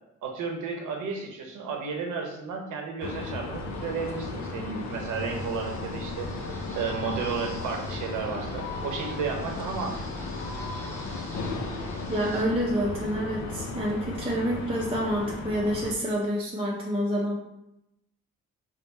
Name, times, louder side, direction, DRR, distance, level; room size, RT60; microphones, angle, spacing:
voice 1, 0.2-6.3 6.7-10.0, right 5 dB, 80° right, 2 dB, 0.8 m, -33 dB
sound 1, 3.0-15.9, left 3 dB, 65° left, 0.6 m, -35 dB
sound 2, 3.7-12.4, left 1 dB, 10° left, 1.1 m, -45 dB
voice 2, 12.1-17.4, equal, 20° right, -4 dB, 0.6 m, -28 dB
3.5 x 2.1 x 4.1 m, 0.86 s
cardioid pair, 90°, 30 cm